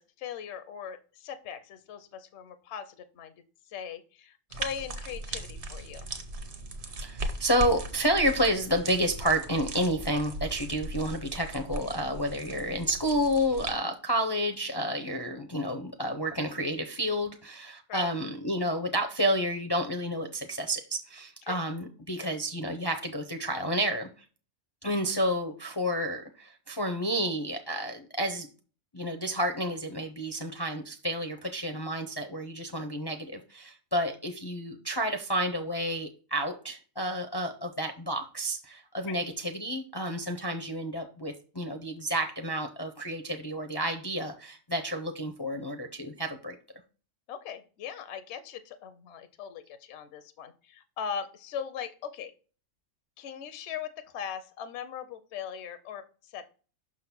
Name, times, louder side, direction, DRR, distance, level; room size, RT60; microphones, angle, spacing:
voice 1, 0.0-6.1 17.9-18.1 21.5-21.6 22.2-22.3 39.1-39.2 47.3-52.3 53.2-56.5, left 7 dB, 65° left, 10 dB, 0.8 m, -40 dB
sound 1, 4.5-13.7, right 2 dB, 45° right, 1.0 m, -38 dB
voice 2, 7.0-24.1 24.8-28.5 28.9-46.6, equal, 30° left, 5 dB, 0.4 m, -30 dB
6.0 x 3.8 x 5.9 m, 0.38 s
omnidirectional pair, 1.3 m